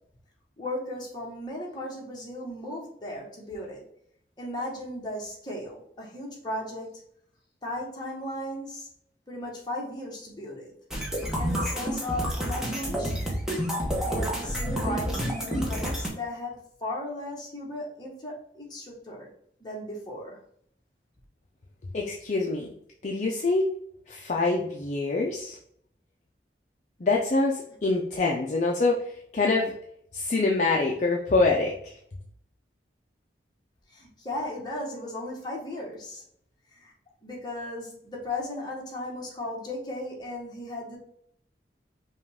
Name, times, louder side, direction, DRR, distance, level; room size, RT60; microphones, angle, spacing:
voice 1, 0.6-3.8 4.4-7.0 7.6-8.9 9.3-10.7 11.4-13.3 14.0-19.3 19.6-20.4 33.9-36.2 36.7-36.9 37.2-41.0, left 1 dB, 25° left, -3 dB, 1.3 m, -36 dB
sound 1, 10.9-16.1, equal, 5° right, 0.8 m, -29 dB
voice 2, 21.9-22.7 23.0-23.7 24.1-25.6 27.0-29.7 30.1-32.0, left 3 dB, 40° left, 0 dB, 0.5 m, -25 dB
5.4 x 2.4 x 3.4 m, 0.68 s
head